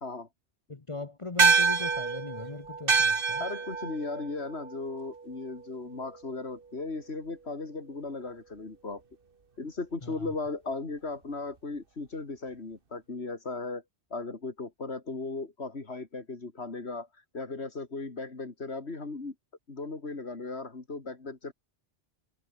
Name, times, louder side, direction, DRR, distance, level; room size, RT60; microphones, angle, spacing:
voice 1, 0.7-3.5 10.0-10.3, left 3 dB, 30° left, 1.3 m, -39 dB
sound 1, 1.4-6.1, right 5 dB, 55° right, 1.7 m, -27 dB
voice 2, 3.4-9.0 9.6-13.8 14.1-19.3 19.7-21.5, left 3 dB, 75° left, 3.1 m, -37 dB
omnidirectional pair, 1.1 m